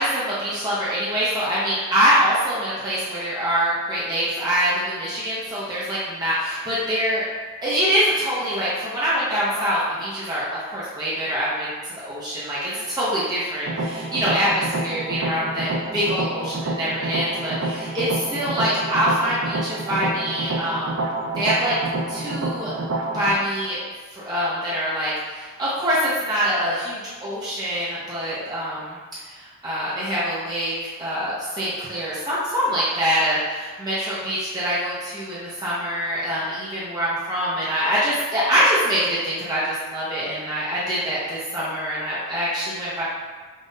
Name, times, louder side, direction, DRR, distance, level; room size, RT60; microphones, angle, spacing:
voice 1, 0.0-7.2 7.6-11.7 12.0-21.0 21.3-21.8 22.1-22.8 23.1-23.8 24.1-29.0 29.2-30.7 31.0-43.0, equal, 20° right, -9 dB, 0.7 m, -24 dB
sound 1, 13.6-23.3, right 2 dB, 70° right, 0.4 m, -28 dB
5.4 x 2.6 x 2.6 m, 1.4 s
head